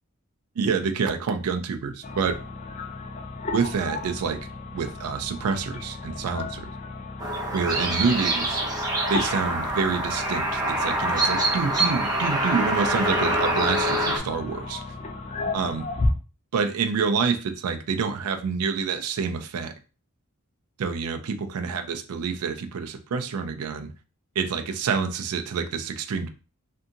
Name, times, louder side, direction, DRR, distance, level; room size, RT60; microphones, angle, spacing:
voice 1, 0.6-2.4 3.5-4.4 4.7-6.7 7.5-8.6 9.1-14.8 15.5-15.9 16.5-19.7 20.8-23.9 24.4-26.3, right 5 dB, 80° right, 7 dB, 0.4 m, -27 dB
sound 1, 2.0-16.1, left 3 dB, 30° left, 0.4 m, -34 dB
sound 2, 7.2-14.2, right 1 dB, 15° right, 0.6 m, -25 dB
2.7 x 2.6 x 2.4 m, 0.34 s
head